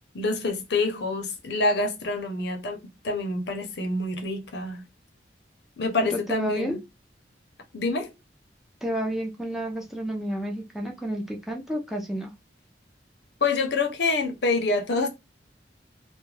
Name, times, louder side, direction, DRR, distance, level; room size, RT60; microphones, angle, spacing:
voice 1, 0.1-4.8 5.8-6.8 7.7-8.1 13.4-15.1, left 3 dB, 70° left, 0.6 m, -27 dB
voice 2, 6.1-6.8 8.8-12.3, equal, ahead, 0.4 m, -30 dB
2.3 x 2.1 x 3.1 m
head